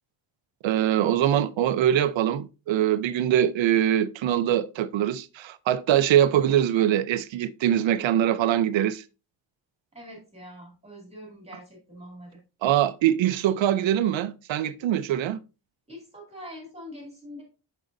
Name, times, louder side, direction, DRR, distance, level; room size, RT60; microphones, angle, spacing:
voice 1, 0.6-9.0 12.6-15.4, right 11 dB, 80° right, 0.6 m, -23 dB
voice 2, 9.9-12.4 15.9-17.4, equal, 15° right, 2.3 m, -44 dB
8.8 x 6.4 x 2.6 m
wide cardioid pair, 170°, 45 cm